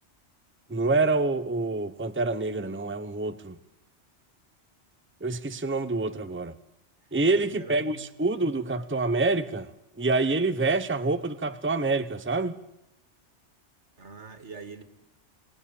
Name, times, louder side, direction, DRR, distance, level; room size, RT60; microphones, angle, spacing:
voice 1, 0.7-3.5 5.2-6.5 7.1-9.7 10.0-12.6, right 3 dB, 10° right, 1.0 m, -26 dB
voice 2, 7.2-8.1 14.0-14.8, right 4 dB, 70° right, 2.5 m, -44 dB
27.5 x 19.0 x 8.9 m
omnidirectional pair, 1.2 m